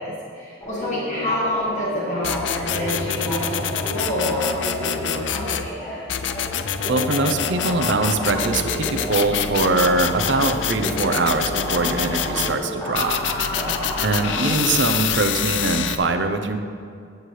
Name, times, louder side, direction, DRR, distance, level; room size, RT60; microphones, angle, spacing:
voice 1, 0.0-6.2 11.8-12.1 13.5-13.9, equal, 40° left, -7 dB, 1.7 m, -28 dB
sound 1, 0.6-6.5 6.8-14.8, equal, 25° left, 2.3 m, -31 dB
sound 2, 2.2-5.7 6.1-12.5 13.0-16.0, left 8 dB, 75° left, 0.5 m, -26 dB
voice 2, 6.9-13.2 14.0-16.6, right 3 dB, 70° right, 7 dB, 0.7 m, -22 dB
14.5 x 8.1 x 3.2 m, 2.3 s
head